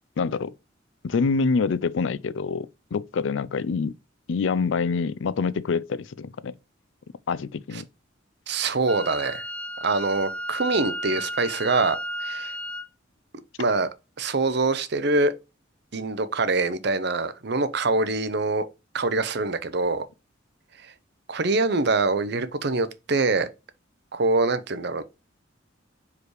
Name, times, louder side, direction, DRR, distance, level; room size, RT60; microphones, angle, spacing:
voice 1, 0.2-0.5 1.0-3.9 4.3-6.5 7.3-7.8, left 4 dB, 75° left, 0.4 m, -26 dB
voice 2, 8.5-9.4 9.8-12.5 13.6-13.9 14.2-15.3 15.9-18.6 18.9-20.1 21.3-23.5 24.1-25.0, right 3 dB, 60° right, 0.7 m, -24 dB
Wind instrument woodwind instrument, 8.9-12.9, equal, 5° left, 0.4 m, -33 dB
4.9 x 4.8 x 4.8 m
head